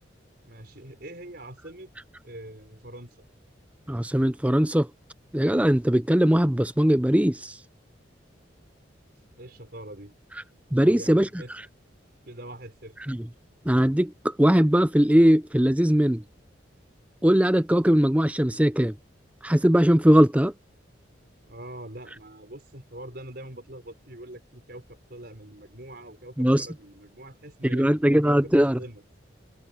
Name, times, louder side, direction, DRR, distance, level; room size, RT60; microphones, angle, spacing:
voice 1, 0.5-1.9 2.2-3.2 9.4-10.2 10.8-11.5 12.3-12.9 21.4-24.8 25.1-27.9 28.2-29.0, right 1 dB, 55° right, 5.3 m, -43 dB
voice 2, 3.9-4.9 5.3-7.5 10.7-11.3 13.1-13.2 13.7-16.2 17.2-18.9 19.4-20.5 26.4-26.7 27.7-28.8, equal, 5° right, 0.6 m, -20 dB
head